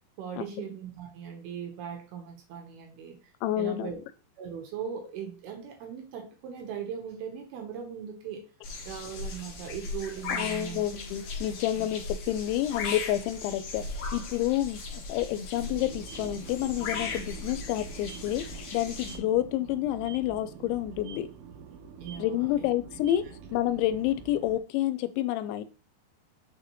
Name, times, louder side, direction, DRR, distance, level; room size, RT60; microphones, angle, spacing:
voice 1, 0.2-3.2 3.6-4.0 4.4-8.4 8.9-10.8 11.8-11.9 22.0-22.7, right 8 dB, 70° right, 2.7 m, -39 dB
voice 2, 3.4-4.0 10.3-21.3 22.2-23.2 23.5-25.6, left 13 dB, 85° left, 2.9 m, -29 dB
sound 1, 8.6-19.2, left 4 dB, 60° left, 1.7 m, -38 dB
sound 2, 15.5-24.6, right 6 dB, 85° right, 2.2 m, -46 dB
6.7 x 4.8 x 3.0 m
omnidirectional pair, 5.3 m